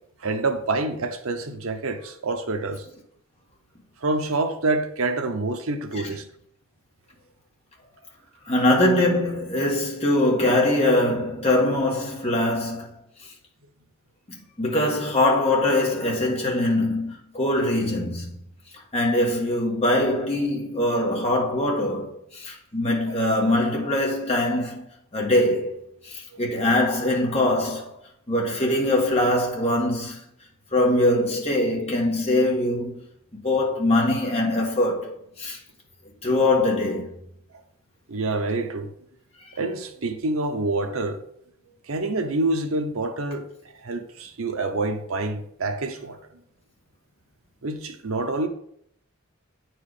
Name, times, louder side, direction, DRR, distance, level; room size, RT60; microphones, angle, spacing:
voice 1, 0.2-2.9 4.0-6.2 38.1-38.9 39.6-41.2 41.9-43.5 43.8-46.2 47.6-48.5, right 2 dB, 75° right, 0.8 m, -27 dB
voice 2, 8.5-13.0 14.3-18.3 18.9-24.8 25.1-25.7 26.0-27.9 28.3-30.2 30.7-33.0 33.3-35.6 36.2-37.1 39.4-39.5, left 1 dB, 30° left, 1.7 m, -22 dB
8.9 x 4.7 x 4.9 m
head